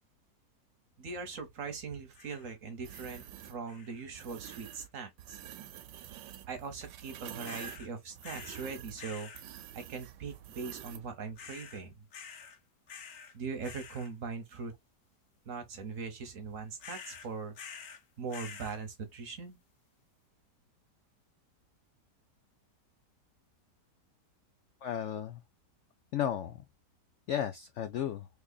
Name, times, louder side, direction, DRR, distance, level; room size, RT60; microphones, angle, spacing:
voice 1, 1.0-5.4 6.5-9.3 9.7-12.0 13.3-14.7 15.5-17.6 18.2-19.6, right 5 dB, 55° right, 1.2 m, -41 dB
sound 1, 2.1-2.5 2.9-3.3 3.7-4.0 4.4-4.9 7.4-7.9 8.2-8.7 9.0-9.4 11.4-11.8 12.1-12.6 12.9-13.3 13.6-14.1 16.8-18.0 18.3-18.8, left 6 dB, 60° left, 1.1 m, -48 dB
sound 2, 2.8-3.6 4.1-4.9 5.2-11.1, right 12 dB, 80° right, 1.2 m, -48 dB
voice 2, 24.8-25.4 26.1-26.6 27.3-28.3, left 10 dB, 90° left, 0.6 m, -34 dB
3.7 x 3.3 x 2.3 m
omnidirectional pair, 1.8 m